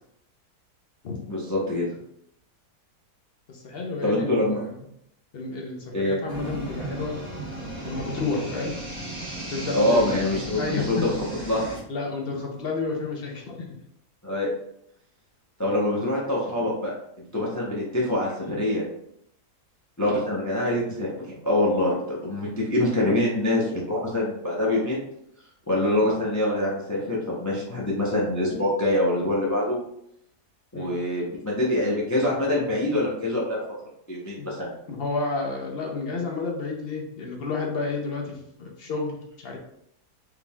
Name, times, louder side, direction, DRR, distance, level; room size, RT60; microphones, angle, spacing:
voice 1, 1.3-1.9 4.0-4.6 5.9-6.2 9.7-11.1 11.4-11.7 14.2-14.5 15.6-18.8 20.0-21.1 21.4-25.0 25.7-29.8 30.7-33.6 34.1-34.7, left 1 dB, 20° left, -4 dB, 0.5 m, -25 dB
voice 2, 3.5-4.5 5.3-7.2 7.8-8.8 9.5-10.2 10.6-11.1 11.9-13.7 30.7-30.9 34.4-34.5 34.9-39.6, left 3 dB, 55° left, 0 dB, 0.7 m, -31 dB
sound 1, 6.3-11.8, right 2 dB, 80° right, 1.8 m, -35 dB
4.7 x 3.6 x 2.3 m, 0.74 s
omnidirectional pair, 1.7 m